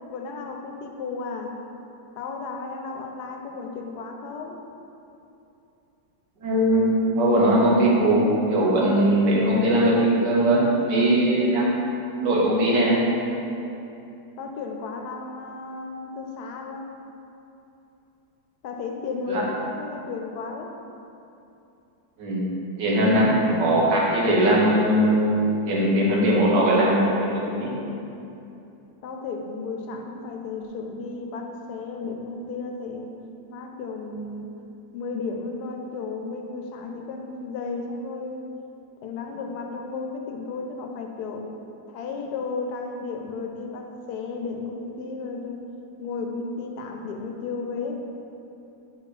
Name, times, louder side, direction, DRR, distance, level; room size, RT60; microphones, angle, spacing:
voice 1, 0.1-1.5 2.2-4.6 14.4-16.9 18.6-20.7 29.0-33.1 33.5-34.5 34.9-38.4 39.0-41.5 41.9-45.6 46.0-48.0, left 4 dB, 75° left, 2 dB, 1.1 m, -33 dB
voice 2, 6.4-11.7 12.2-13.0 19.3-19.4 22.2-22.5 22.8-27.7, right 1 dB, 90° right, -5 dB, 1.7 m, -20 dB
5.0 x 4.2 x 4.9 m, 2.8 s
omnidirectional pair, 1.8 m